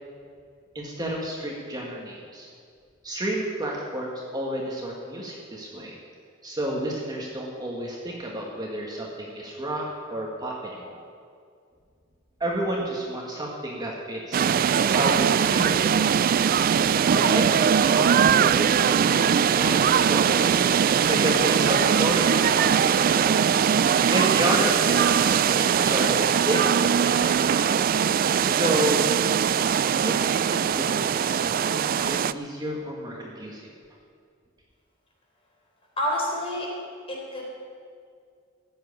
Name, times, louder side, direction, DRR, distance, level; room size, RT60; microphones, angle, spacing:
voice 1, 0.7-2.5 3.0-5.9 6.4-11.0 12.4-16.3 17.1-20.6 21.1-26.6 27.0-27.7 28.5-29.2 30.0-33.6, right 1 dB, 20° right, -2 dB, 1.9 m, -31 dB
sound 1, 14.3-32.3, right 7 dB, 45° right, 0.3 m, -21 dB
voice 2, 36.0-36.7 37.1-37.5, equal, 30° left, -2 dB, 4.1 m, -28 dB
15.5 x 7.9 x 9.5 m, 2.2 s
head